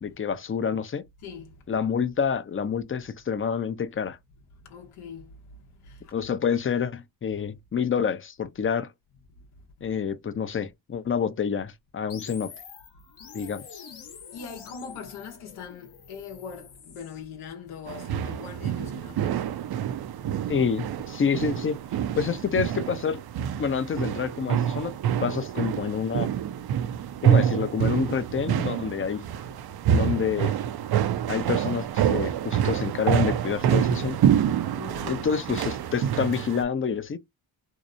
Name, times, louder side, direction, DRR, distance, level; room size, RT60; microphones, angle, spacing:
voice 1, 0.0-1.0 1.7-4.2 6.1-8.9 9.8-12.5 13.3-13.8 20.5-21.8 22.2-23.2 23.6-26.3 27.2-29.2 29.9-30.6 31.3-34.2 35.0-37.2, left 6 dB, 25° left, 0.4 m, -28 dB
voice 2, 4.7-5.3 5.8-6.0 14.3-19.4 34.7-35.3, left 6 dB, 85° left, 0.8 m, -41 dB
sound 1, 12.1-17.2, left 7 dB, 55° left, 0.9 m, -46 dB
sound 2, 17.9-36.6, right 9 dB, 50° right, 0.5 m, -27 dB
2.8 x 2.0 x 2.5 m
cardioid pair, 60°, 49 cm